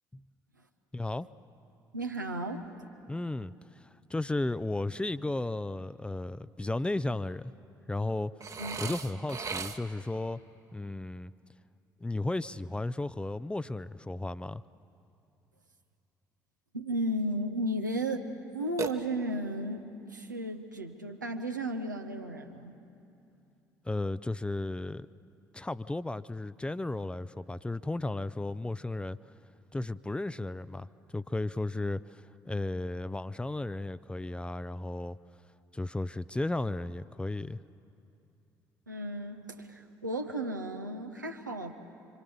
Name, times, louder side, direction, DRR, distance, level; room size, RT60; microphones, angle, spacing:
voice 1, 0.9-1.3 3.1-3.8 4.1-7.5 7.9-8.3 8.8-10.4 10.7-11.3 12.0-14.6 23.9-25.1 25.5-29.2 29.7-35.2 35.7-37.6, left 2 dB, 10° left, 16 dB, 0.5 m, -34 dB
voice 2, 1.9-2.7 8.6-8.8 16.7-18.2 18.5-22.7 38.9-41.7, right 1 dB, 90° right, 4 dB, 1.0 m, -34 dB
Burping eructation, 8.4-10.1 18.8-19.6, right 5 dB, 35° right, 1.1 m, -38 dB
26.0 x 25.5 x 6.9 m, 2.7 s
figure-of-eight pair, 50°, 10 cm